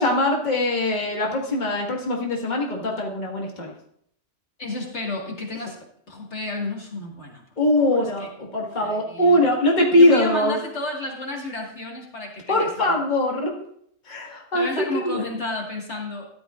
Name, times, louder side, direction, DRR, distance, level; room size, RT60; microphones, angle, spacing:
voice 1, 0.0-3.7 7.6-10.6 12.5-13.5 14.1-14.7 14.9-15.2, left 1 dB, 35° left, -1 dB, 1.9 m, -21 dB
voice 2, 4.6-5.8 6.1-7.4 7.8-8.3 8.7-9.4 10.0-12.9 14.5-16.3, left 2 dB, 60° left, 0 dB, 2.2 m, -32 dB
14.0 x 11.5 x 2.5 m, 0.67 s
omnidirectional pair, 1.3 m